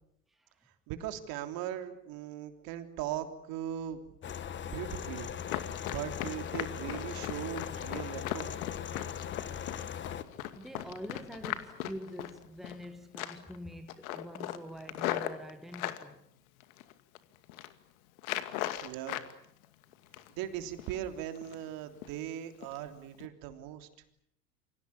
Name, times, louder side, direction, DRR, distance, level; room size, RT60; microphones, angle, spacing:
voice 1, 0.3-0.6 10.5-16.2, equal, ahead, 1.7 m, -45 dB
voice 2, 0.9-4.0 4.6-5.3 5.9-8.5 18.8-19.2 20.4-23.9, right 11 dB, 45° right, 3.4 m, -39 dB
sound 1, 4.2-10.2, left 8 dB, 25° left, 1.5 m, -40 dB
Run, 5.4-12.8 13.1-13.6 13.9-16.0 16.6-17.2 17.4-17.7 18.2-19.3 19.6-20.4 20.8-21.0 21.4-21.7 22.0-22.2 22.6-22.8 23.1-23.3, left 13 dB, 60° left, 2.4 m, -38 dB
28.5 x 25.5 x 7.2 m
figure-of-eight pair, 90°, 48 cm